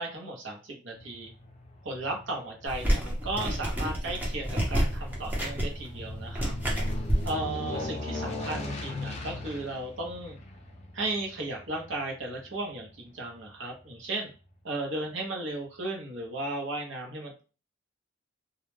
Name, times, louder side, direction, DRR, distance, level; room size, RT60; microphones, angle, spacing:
voice 1, 0.0-1.3 1.8-6.5 7.3-10.4 10.9-14.3 14.6-17.4, right 2 dB, 70° right, 1 dB, 0.8 m, -35 dB
Aircraft, 0.9-13.5 13.9-14.0, left 1 dB, 35° left, 0.5 m, -39 dB
sound 1, 2.7-7.3, equal, 10° right, 0.7 m, -29 dB
2.3 x 2.1 x 3.1 m, 0.35 s
head